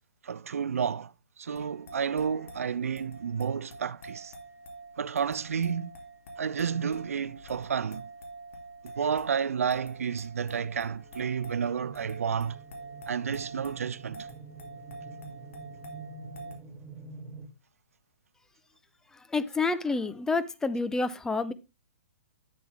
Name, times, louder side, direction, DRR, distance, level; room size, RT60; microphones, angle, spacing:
voice 1, 0.2-1.1 1.4-4.3 5.0-5.9 6.4-8.1 9.0-12.6 13.1-14.3, right 7 dB, 75° right, 0.4 m, -31 dB
sound 1, 1.5-16.5, right 2 dB, 65° left, 2.6 m, -46 dB
sound 2, 10.9-17.5, right 4 dB, 25° right, 2.2 m, -47 dB
voice 2, 19.1-21.5, left 3 dB, 5° left, 0.6 m, -29 dB
8.6 x 7.7 x 3.3 m
hypercardioid pair, 125°, 8 cm